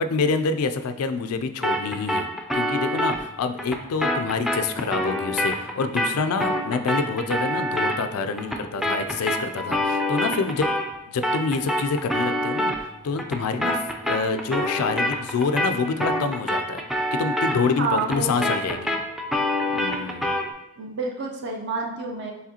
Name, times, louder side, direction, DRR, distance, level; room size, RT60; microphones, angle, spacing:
voice 1, 0.0-2.3 2.5-10.7 11.1-16.8 17.1-18.9 19.7-20.4, left 4 dB, 80° left, 10 dB, 0.4 m, -27 dB
sound 1, 1.6-11.0 11.2-20.5, equal, ahead, 0.3 m, -27 dB
voice 2, 17.8-18.9 20.8-22.3, right 4 dB, 55° right, 0 dB, 0.6 m, -29 dB
4.8 x 3.3 x 2.8 m, 0.94 s
head